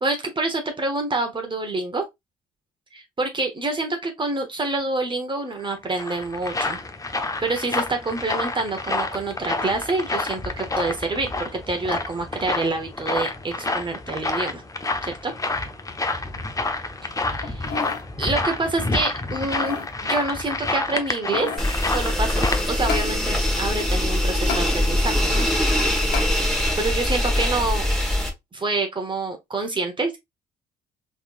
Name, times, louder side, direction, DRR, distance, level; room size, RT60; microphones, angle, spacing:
voice 1, 0.0-2.0 2.9-6.8 7.2-14.6 15.0-15.3 17.4-17.9 18.2-19.8 20.0-21.5 21.9-25.5 26.8-27.9 28.5-30.2, right 2 dB, 30° right, 1.1 m, -27 dB
sound 1, 5.6-22.6, left 2 dB, 20° left, 0.8 m, -29 dB
sound 2, 17.4-18.1 18.5-18.6 19.3-19.9 20.9-21.7 22.9-23.1 24.5-24.7 26.1-26.3 26.9-27.0, left 6 dB, 75° left, 0.9 m, -31 dB
sound 3, 21.6-28.3, left 1 dB, ahead, 1.5 m, -22 dB
3.6 x 3.2 x 2.5 m
hypercardioid pair, 55°, 17 cm